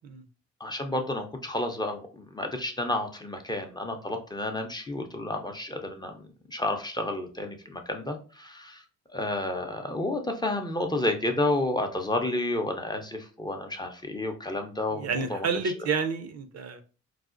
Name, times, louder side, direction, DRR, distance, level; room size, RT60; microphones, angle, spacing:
voice 1, 0.6-8.8 9.1-15.5, left 2 dB, 15° left, 4 dB, 0.5 m, -31 dB
voice 2, 14.9-16.8, right 5 dB, 55° right, 7 dB, 0.6 m, -30 dB
4.7 x 2.0 x 2.4 m, 0.37 s
cardioid pair, 90°, 30 cm